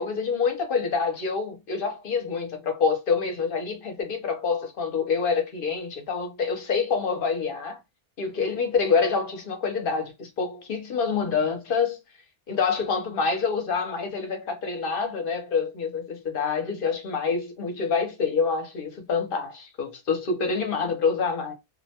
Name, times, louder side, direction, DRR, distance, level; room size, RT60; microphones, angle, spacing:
voice 1, 0.0-7.8 8.2-12.0 12.5-21.5, left 5 dB, 55° left, 0.8 m, -26 dB
2.5 x 2.2 x 2.8 m
omnidirectional pair, 1.2 m